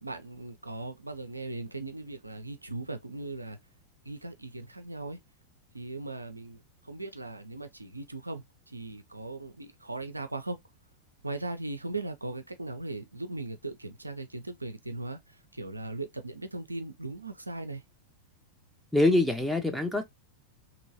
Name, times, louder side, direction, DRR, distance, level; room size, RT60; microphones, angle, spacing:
voice 1, 0.0-3.6 4.0-5.2 5.7-10.6 11.2-17.8, right 2 dB, 85° right, 0.5 m, -38 dB
voice 2, 18.9-20.0, left 2 dB, ahead, 0.6 m, -24 dB
3.0 x 2.8 x 2.6 m
figure-of-eight pair, 90°, 0 cm